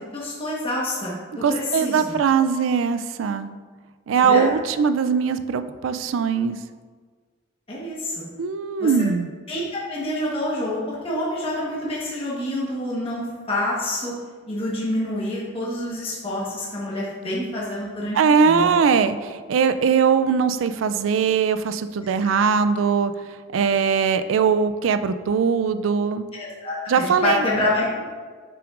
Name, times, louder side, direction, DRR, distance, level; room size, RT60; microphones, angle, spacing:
voice 1, 0.1-2.1 4.1-4.5 7.7-8.3 8.8-8.9 9.5-9.6 9.9-14.1 14.5-18.2 18.4-18.7 22.2-22.3 26.4-28.0, left 1 dB, 30° left, -6 dB, 1.2 m, -27 dB
voice 2, 1.4-3.6 4.1-6.6 8.4-9.3 18.1-23.1 23.5-26.2 26.9-27.5, right 6 dB, 90° right, 12 dB, 0.3 m, -20 dB
6.9 x 5.9 x 2.5 m, 1.5 s
head